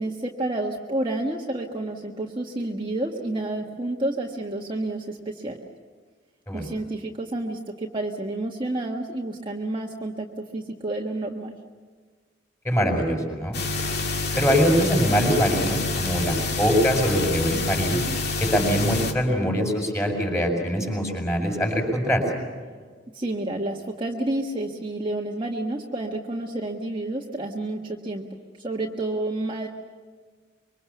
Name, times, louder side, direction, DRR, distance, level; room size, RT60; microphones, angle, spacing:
voice 1, 0.0-5.6 6.5-10.3 10.5-11.5 23.1-28.2 28.6-29.7, right 2 dB, 25° right, -1 dB, 1.5 m, -29 dB
voice 2, 12.6-13.6 14.4-18.0 18.4-22.2, equal, 15° left, 2 dB, 6.0 m, -23 dB
sound 1, 13.5-19.1, left 3 dB, 60° left, 2.2 m, -27 dB
25.5 x 24.0 x 7.1 m, 1.5 s
head